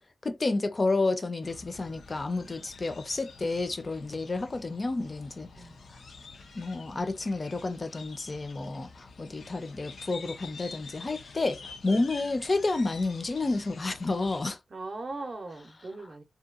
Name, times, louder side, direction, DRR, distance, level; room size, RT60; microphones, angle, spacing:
voice 1, 0.2-5.5 6.5-14.6, left 3 dB, 35° left, 0.5 m, -30 dB
sound 1, 1.4-14.5, left 4 dB, 85° left, 0.5 m, -48 dB
voice 2, 14.7-16.2, right 3 dB, 45° right, 0.6 m, -39 dB
2.8 x 2.2 x 2.3 m
wide cardioid pair, 125°, 0 cm